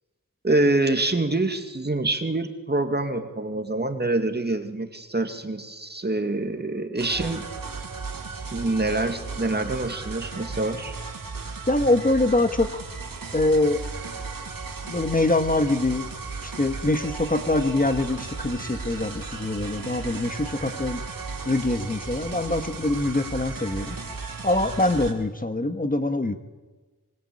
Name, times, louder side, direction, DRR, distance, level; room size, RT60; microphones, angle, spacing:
voice 1, 0.4-7.5 8.5-11.0, right 2 dB, 30° right, 6 dB, 2.4 m, -26 dB
sound 1, 7.0-25.1, right 4 dB, 70° right, 3.8 m, -35 dB
voice 2, 11.7-12.8 13.3-13.8 14.8-16.0 16.4-21.0 21.4-24.0 24.4-26.3, left 2 dB, 25° left, 7 dB, 1.5 m, -24 dB
24.5 x 24.5 x 8.7 m, 1.2 s
wide cardioid pair, 95°, 35 cm